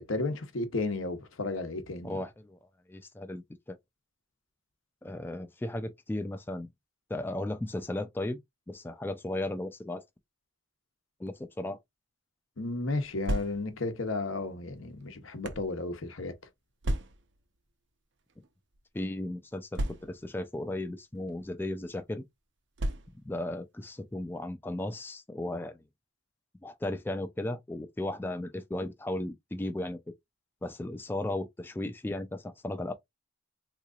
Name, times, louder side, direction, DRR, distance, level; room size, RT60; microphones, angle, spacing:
voice 1, 0.0-2.2 12.6-16.3, left 2 dB, 85° left, 0.9 m, -33 dB
voice 2, 2.0-2.6 2.9-3.4 3.7-3.8 5.0-6.7 7.1-8.4 8.7-10.0 11.2-11.8 18.9-22.2 23.2-25.8 26.6-30.1 30.6-32.9, left 1 dB, 10° left, 0.3 m, -35 dB
sound 1, 13.0-13.9 14.7-15.7 16.8-17.4 18.3-18.5 18.7-18.8 19.7-20.4 21.3-21.5 22.8-23.4, right 1 dB, 60° right, 0.6 m, -34 dB
3.7 x 2.9 x 2.4 m
head